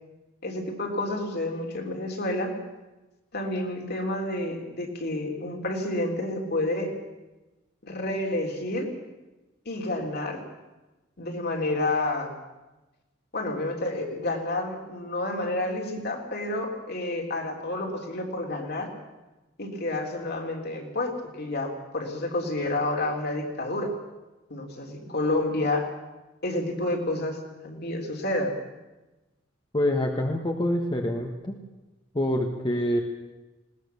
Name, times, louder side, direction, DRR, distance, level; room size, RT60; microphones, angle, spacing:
voice 1, 0.4-2.5 3.3-6.9 7.8-8.9 9.7-10.4 11.2-12.3 13.3-18.9 19.6-23.9 24.5-25.9 26.4-27.4 27.6-28.5, left 2 dB, 55° left, 2 dB, 3.5 m, -29 dB
voice 2, 29.7-31.6 32.1-33.0, left 1 dB, 25° left, 2 dB, 1.5 m, -26 dB
20.5 x 19.0 x 7.0 m, 1.1 s
head